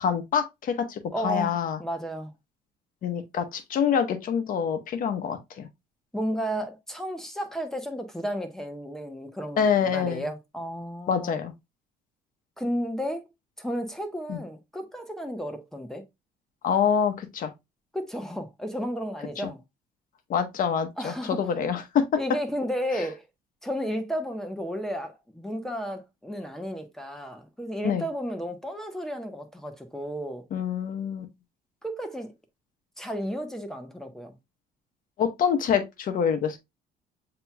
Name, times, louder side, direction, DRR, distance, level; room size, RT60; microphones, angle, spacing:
voice 1, 0.0-1.8 3.0-5.7 9.6-10.3 11.1-11.5 14.3-14.4 16.6-17.5 20.3-22.0 22.9-23.1 27.8-28.0 30.5-31.2 35.2-36.6, left 7 dB, 55° left, 0.9 m, -26 dB
voice 2, 1.1-2.3 6.1-11.4 12.6-13.3 13.6-16.0 17.9-19.6 21.0-21.4 22.2-23.2 23.6-30.4 31.8-32.3 33.0-34.4, equal, 5° left, 1.0 m, -33 dB
7.6 x 3.0 x 2.2 m
cardioid pair, 110°, 17 cm